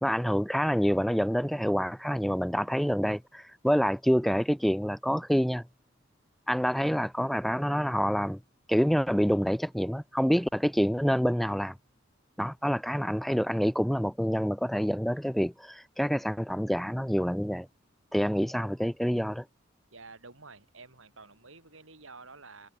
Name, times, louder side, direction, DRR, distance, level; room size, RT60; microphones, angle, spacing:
voice 1, 0.0-5.6 6.5-8.4 8.7-11.7 12.4-17.7 18.1-19.4, equal, ahead, 1.6 m, -27 dB
voice 2, 19.9-22.7, right 3 dB, 80° right, 7.4 m, -50 dB
head